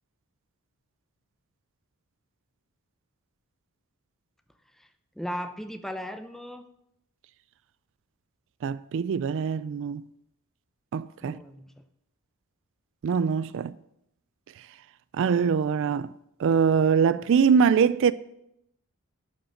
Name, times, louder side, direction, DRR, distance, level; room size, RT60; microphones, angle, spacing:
voice 1, 5.2-6.6 11.2-11.8, equal, ahead, 0.6 m, -37 dB
voice 2, 8.6-10.0 10.9-11.4 13.0-13.7 15.1-16.1 16.4-18.1, right 6 dB, 60° right, 0.3 m, -23 dB
11.5 x 5.3 x 7.1 m
head